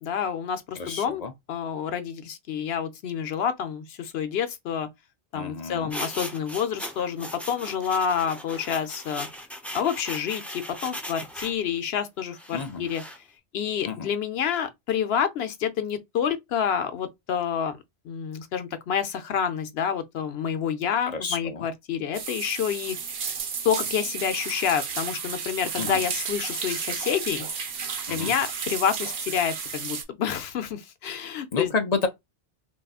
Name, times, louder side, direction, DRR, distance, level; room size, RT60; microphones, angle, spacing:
voice 1, 0.0-1.2 1.5-4.9 5.3-9.3 9.7-13.0 13.5-17.8 18.0-23.0 23.6-27.5 28.1-31.7, left 8 dB, 75° left, 0.9 m, -28 dB
voice 2, 0.8-1.3 5.3-5.9 12.5-12.9 13.9-14.1 21.1-21.7 25.8-26.1 28.1-28.3 31.5-32.1, left 4 dB, 50° left, 0.6 m, -30 dB
sound 1, 5.9-11.6 12.4-13.2, equal, ahead, 0.7 m, -38 dB
sound 2, 22.1-30.0, right 6 dB, 70° right, 1.0 m, -32 dB
3.5 x 2.7 x 2.4 m
omnidirectional pair, 1.1 m